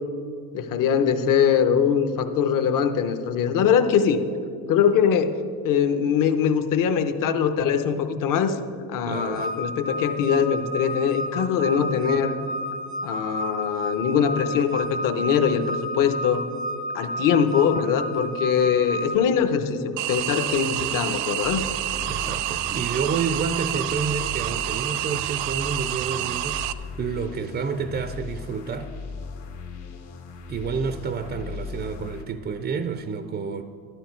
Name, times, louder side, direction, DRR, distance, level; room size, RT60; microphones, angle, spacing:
voice 1, 0.5-4.2 4.7-5.3 5.6-8.6 8.9-12.4 13.0-16.4 16.9-21.7, left 7 dB, 55° left, 9 dB, 0.9 m, -22 dB
voice 2, 9.0-9.6 22.1-28.9 30.5-33.6, right 5 dB, 25° right, 9 dB, 0.4 m, -29 dB
sound 1, 9.1-19.2, equal, 25° left, 0.6 m, -32 dB
sound 2, 20.0-26.7, right 14 dB, 90° right, 0.6 m, -28 dB
sound 3, 21.4-32.2, left 5 dB, 75° left, 1.8 m, -38 dB
12.5 x 12.0 x 4.5 m, 2.3 s
cardioid pair, 145°, 40 cm